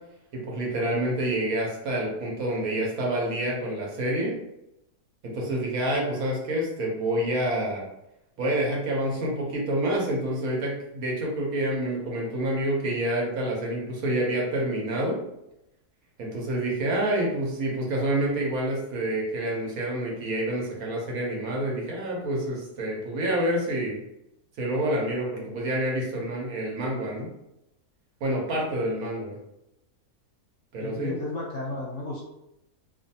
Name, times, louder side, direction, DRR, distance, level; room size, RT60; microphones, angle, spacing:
voice 1, 0.3-4.3 5.2-7.9 8.4-15.2 16.2-24.0 24.6-27.3 28.2-29.4 30.7-31.1, right 1 dB, 70° right, -2 dB, 1.1 m, -28 dB
voice 2, 30.8-32.2, left 2 dB, 65° left, -2 dB, 0.8 m, -33 dB
2.5 x 2.4 x 2.7 m, 0.85 s
omnidirectional pair, 1.6 m